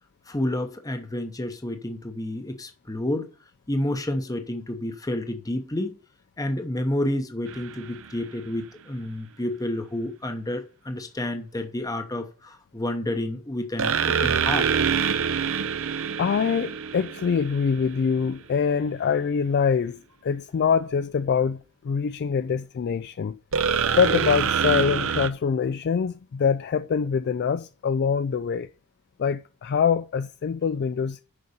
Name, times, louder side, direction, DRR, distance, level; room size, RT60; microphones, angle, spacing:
voice 1, 0.3-3.3 3.7-5.9 6.4-14.7, left 1 dB, 15° left, 0.8 m, -30 dB
sound 1, 7.5-8.1 13.8-17.9 23.5-25.3, right 7 dB, 60° right, 0.7 m, -25 dB
voice 2, 16.2-23.4 24.0-28.7 29.2-31.2, left 6 dB, 50° left, 0.3 m, -24 dB
6.7 x 5.3 x 6.9 m
head